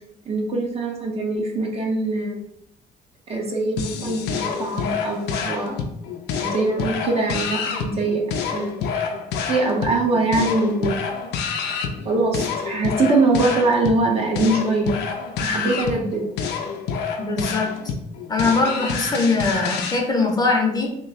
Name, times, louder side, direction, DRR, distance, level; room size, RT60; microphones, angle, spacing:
voice 1, 0.3-2.4 3.3-5.8 6.4-8.2 8.5-9.0 9.5-11.0 11.9-15.0 15.4-16.2, right 2 dB, 35° right, 0 dB, 0.8 m, -22 dB
sound 1, 3.8-20.0, left 6 dB, 80° left, 0.5 m, -28 dB
voice 2, 17.2-17.8 18.3-20.9, left 3 dB, 25° left, 0 dB, 0.8 m, -21 dB
3.0 x 2.2 x 4.0 m, 0.78 s
cardioid pair, 110°, 17 cm